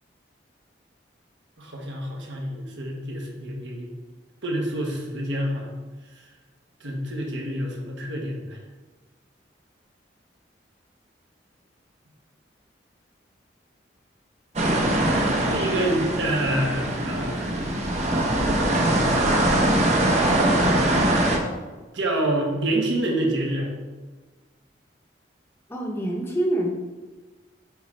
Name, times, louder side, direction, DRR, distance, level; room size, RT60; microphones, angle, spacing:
voice 1, 1.6-3.9 4.4-5.7 6.8-8.6 15.5-17.5 21.9-23.7, right 1 dB, 80° right, 0 dB, 1.3 m, -27 dB
sound 1, 14.6-21.4, right 1 dB, 35° right, 0.7 m, -22 dB
voice 2, 15.0-15.7 25.7-26.7, right 1 dB, 15° left, -1 dB, 0.7 m, -28 dB
8.0 x 3.8 x 3.2 m, 1.3 s
head